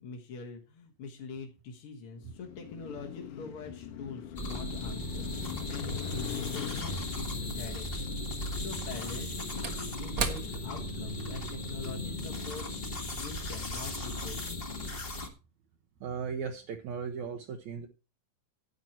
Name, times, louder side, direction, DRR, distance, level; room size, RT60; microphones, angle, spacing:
voice 1, 0.0-12.7 13.0-14.6, left 4 dB, 50° left, 0 dB, 2.1 m, -44 dB
Car passing by, 2.2-14.4, left 7 dB, 75° left, 2.6 m, -43 dB
sound 1, 4.4-15.3, left 1 dB, 25° left, 1.2 m, -37 dB
Slam / Wood, 7.2-7.3 8.7-13.4 13.8-13.9, right 5 dB, 50° right, 1.1 m, -39 dB
voice 2, 16.0-17.9, right 6 dB, 70° right, 4 dB, 2.1 m, -37 dB
11.0 x 9.6 x 4.4 m, 0.31 s
omnidirectional pair, 3.7 m